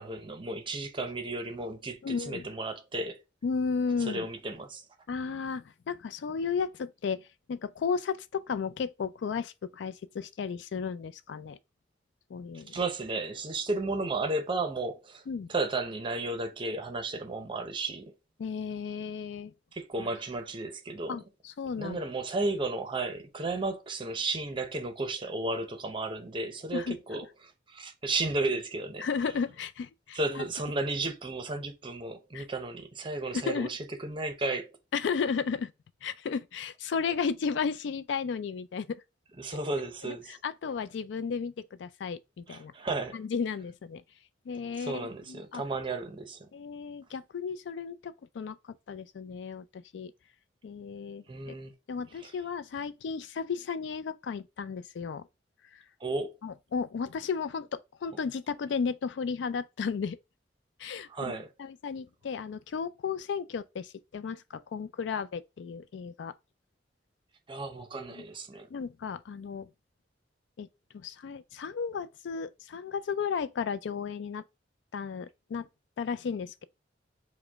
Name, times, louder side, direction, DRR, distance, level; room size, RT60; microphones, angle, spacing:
voice 1, 0.0-3.2 4.1-4.8 12.7-15.2 15.5-18.1 19.7-21.2 21.8-29.1 30.1-34.7 39.4-40.3 42.5-43.2 44.8-46.5 51.3-51.7 52.2-52.3 56.0-56.4 61.1-61.5 67.5-68.7, right 2 dB, 30° right, 0.6 m, -33 dB
voice 2, 2.0-2.5 3.4-4.3 5.1-11.6 12.3-12.8 15.3-15.5 18.4-19.5 20.0-20.1 21.1-22.0 26.7-27.2 29.0-30.5 32.3-32.5 33.3-33.7 34.9-35.7 36.0-39.0 40.0-42.7 43.1-44.0 44.5-45.6 46.5-50.1 50.6-51.6 51.9-55.3 55.7-55.8 56.4-60.2 60.8-66.3 68.1-68.2 68.7-69.7 70.6-70.7 70.9-74.4 74.9-75.7 76.0-76.6, left 5 dB, 75° left, 0.4 m, -34 dB
5.0 x 2.1 x 3.4 m
head